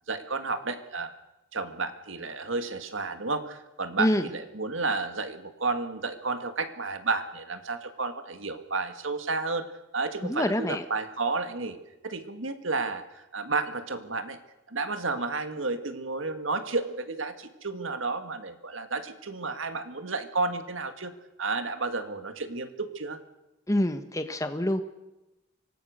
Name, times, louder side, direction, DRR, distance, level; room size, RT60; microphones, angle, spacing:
voice 1, 0.1-1.1 1.5-9.7 9.9-11.8 12.0-14.4 14.7-23.2, right 3 dB, 90° right, 9 dB, 1.9 m, -32 dB
voice 2, 10.2-10.8 23.7-24.8, left 1 dB, 15° left, 8 dB, 1.2 m, -26 dB
25.5 x 18.0 x 6.6 m, 0.98 s
head